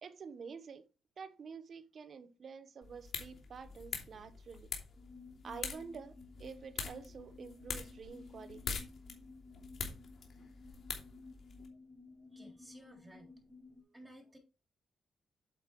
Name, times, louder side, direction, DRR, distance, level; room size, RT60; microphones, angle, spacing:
voice 1, 0.0-0.8 1.2-4.7 5.4-8.8, right 5 dB, 60° right, 1.0 m, -49 dB
sound 1, 2.8-11.7, left 5 dB, 65° left, 2.9 m, -45 dB
sound 2, 4.9-13.8, left 3 dB, 10° left, 4.7 m, -55 dB
voice 2, 12.2-13.3 13.8-14.4, right 1 dB, 10° right, 3.4 m, -56 dB
8.8 x 7.5 x 3.2 m
cardioid pair, 70°, 0 cm